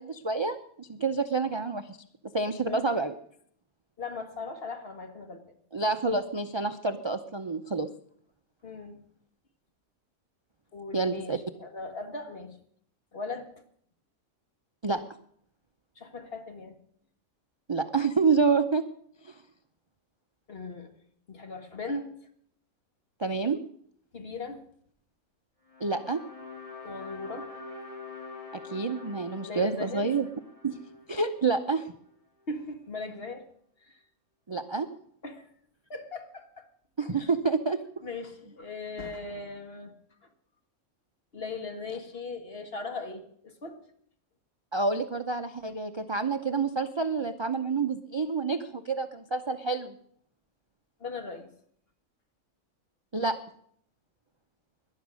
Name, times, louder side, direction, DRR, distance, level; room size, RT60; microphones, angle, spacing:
voice 1, 0.0-2.0 2.3-3.1 5.7-7.9 10.9-11.4 14.8-15.0 17.7-18.8 19.2-19.4 23.2-23.6 25.8-26.2 28.6-30.3 30.6-30.8 31.1-31.9 34.5-34.9 37.0-37.8 44.7-49.9 53.1-53.4, right 4 dB, 35° right, 7 dB, 0.4 m, -28 dB
voice 2, 4.0-5.4 8.6-9.0 10.7-12.6 13.1-13.5 16.0-16.8 20.5-20.9 21.3-22.1 24.1-24.6 26.8-27.5 29.5-30.1 32.5-33.5 33.8-34.0 35.2-35.5 35.9-36.7 37.2-37.3 38.0-39.9 41.3-43.8 51.0-51.5, left 3 dB, 45° left, 6 dB, 1.8 m, -38 dB
sound 1, 25.7-31.9, left 4 dB, 25° left, 2.4 m, -45 dB
19.0 x 11.5 x 6.3 m, 0.64 s
omnidirectional pair, 1.5 m